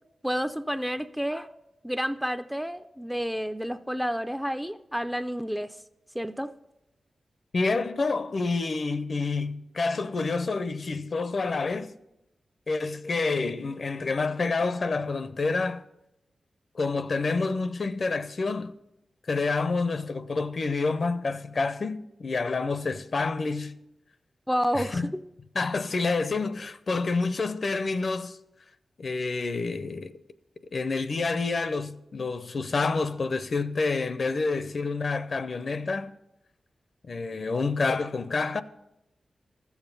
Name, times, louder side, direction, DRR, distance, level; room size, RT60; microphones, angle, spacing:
voice 1, 0.2-1.5 1.8-5.8 6.1-6.5 24.5-25.1, equal, ahead, 0.3 m, -30 dB
voice 2, 7.5-11.9 12.7-15.8 16.7-18.7 19.3-23.7 24.7-25.1 25.6-28.4 29.0-30.2 30.7-36.1 37.1-38.6, left 3 dB, 50° left, 0.5 m, -28 dB
14.0 x 7.1 x 5.4 m
wide cardioid pair, 105°, 0 cm